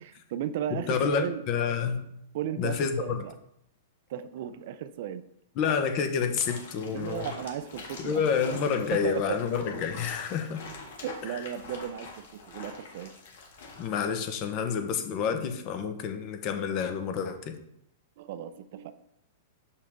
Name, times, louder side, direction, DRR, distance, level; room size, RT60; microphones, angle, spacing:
voice 1, 0.0-1.4 2.3-3.3 4.1-5.2 6.9-8.6 8.9-9.4 11.0-13.1 18.2-18.9, right 10 dB, 60° right, 12 dB, 0.5 m, -35 dB
voice 2, 0.9-2.1 2.6-3.0 5.6-7.3 8.0-10.6 13.8-17.5, left 6 dB, 40° left, 7 dB, 0.9 m, -29 dB
sound 1, 6.4-13.9, left 3 dB, 70° left, 1.8 m, -45 dB
6.5 x 5.6 x 3.5 m, 0.77 s
hypercardioid pair, 135°, 0 cm